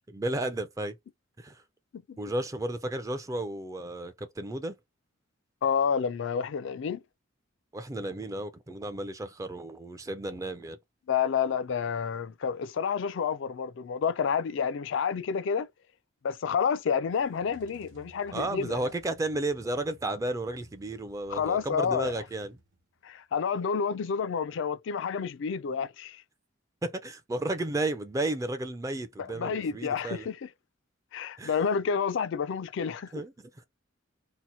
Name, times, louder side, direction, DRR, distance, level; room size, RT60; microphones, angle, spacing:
voice 1, 0.1-1.0 1.4-1.6 2.2-4.8 7.7-10.8 18.3-22.6 26.8-30.3 31.4-31.5 33.1-33.5, right 2 dB, 15° right, 0.4 m, -33 dB
voice 2, 5.6-7.0 11.1-15.7 16.2-18.9 21.3-22.1 23.0-26.2 29.2-30.5 31.1-33.1, left 6 dB, 65° left, 0.3 m, -29 dB
sound 1, 17.0-23.0, right 2 dB, 70° right, 1.0 m, -57 dB
2.8 x 2.1 x 4.1 m
head